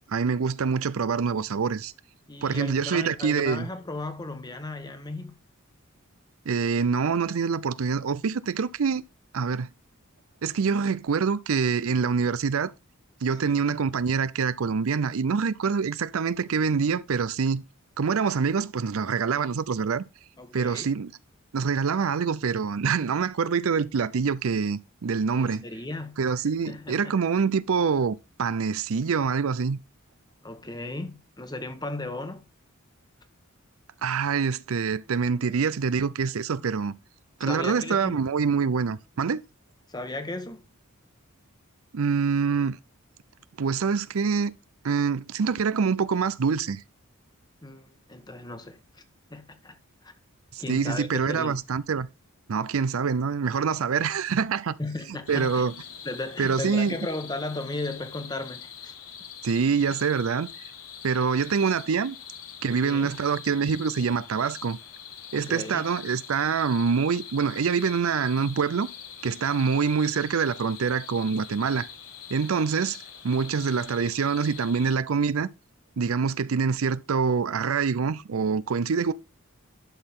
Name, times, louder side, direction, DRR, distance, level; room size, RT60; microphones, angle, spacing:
voice 1, 0.1-1.9 2.4-3.7 6.5-9.0 9.3-9.7 10.4-12.7 13.2-17.6 18.0-20.0 20.5-21.1 21.5-25.6 26.2-29.8 34.0-36.9 37.4-39.4 41.9-42.8 43.6-44.5 44.8-46.8 50.5-52.1 52.5-54.8 55.1-55.7 56.4-57.0 59.4-60.5 61.0-62.2 62.6-64.8 65.3-68.9 69.2-71.9 72.3-73.0 73.2-75.5 76.0-79.1, right 5 dB, 70° right, 0.5 m, -25 dB
voice 2, 2.3-5.4 13.4-13.7 20.4-20.9 25.4-26.2 26.7-27.1 30.4-32.4 37.4-38.2 39.9-40.6 47.6-49.0 49.3-49.8 50.0-50.1 50.6-51.6 54.8-55.6 56.0-58.9 62.8-63.1 65.3-65.8, left 2 dB, 20° left, 1.2 m, -36 dB
sound 1, 55.3-75.0, left 8 dB, 75° left, 1.5 m, -44 dB
11.5 x 6.3 x 3.7 m
head